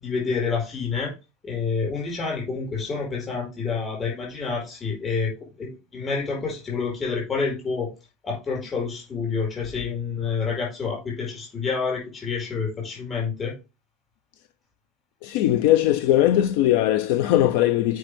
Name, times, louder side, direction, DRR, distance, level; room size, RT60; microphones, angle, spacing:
voice 1, 0.0-1.1 1.4-5.3 5.6-7.9 8.2-13.5, left 5 dB, 20° left, 4.8 m, -28 dB
voice 2, 15.2-18.0, left 13 dB, 60° left, 0.5 m, -20 dB
7.8 x 5.4 x 3.5 m
supercardioid pair, 170°, 0 cm